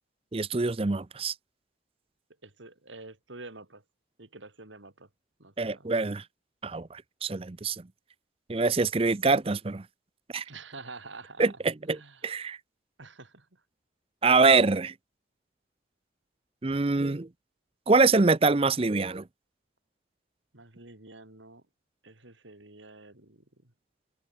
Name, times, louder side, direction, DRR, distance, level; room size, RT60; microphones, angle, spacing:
voice 1, 0.3-1.3 5.6-6.2 6.6-7.9 8.5-9.8 10.3-10.4 11.4-12.6 14.2-14.9 16.6-17.3 17.9-19.3, right 4 dB, 30° right, 0.5 m, -25 dB
voice 2, 2.4-3.8 4.2-5.1 5.4-5.9 10.4-11.4 11.9-12.3 13.0-13.6 20.5-21.6 22.0-23.7, right 3 dB, 80° right, 3.2 m, -48 dB
head